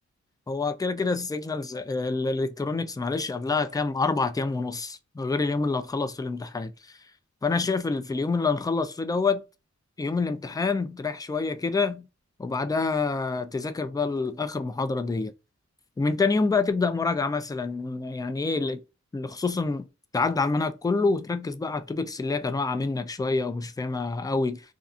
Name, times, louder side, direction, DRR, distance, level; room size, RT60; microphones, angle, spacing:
voice 1, 0.5-6.7 7.4-9.4 10.0-12.1 12.4-15.3 16.0-18.8 19.1-19.9 20.1-24.6, left 4 dB, 15° left, 0.3 m, -27 dB
2.6 x 2.4 x 2.3 m
wide cardioid pair, 65°, 29 cm